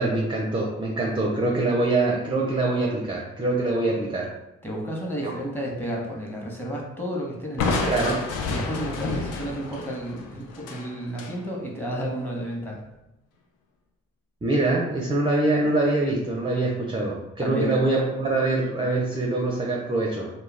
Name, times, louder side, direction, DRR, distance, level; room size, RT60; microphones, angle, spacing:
voice 1, 0.0-4.3 5.2-5.3 7.9-8.2 14.4-20.3, right 2 dB, 15° right, -2 dB, 0.5 m, -24 dB
voice 2, 4.6-8.0 8.5-12.8 17.4-17.8, equal, 5° left, -2 dB, 0.9 m, -31 dB
Crushing, 7.6-11.4, left 3 dB, 80° left, 0.5 m, -29 dB
2.3 x 2.1 x 3.2 m, 0.92 s
supercardioid pair, 65°, 31 cm